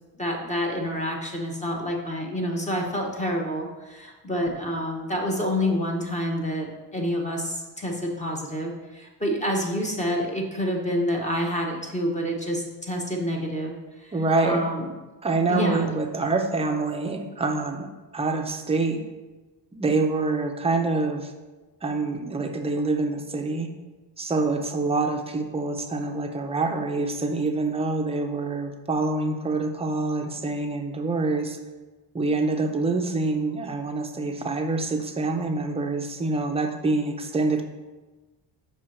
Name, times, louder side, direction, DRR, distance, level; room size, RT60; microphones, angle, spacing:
voice 1, 0.2-14.1 14.4-14.8 15.5-15.9, equal, 15° left, 0 dB, 0.7 m, -28 dB
voice 2, 14.1-14.6 15.2-17.9 18.1-19.0 19.7-21.3 21.8-23.7 24.2-31.6 32.1-37.6, right 3 dB, 15° right, 4 dB, 0.4 m, -26 dB
5.5 x 4.5 x 6.2 m, 1.2 s
cardioid pair, 175°, 43 cm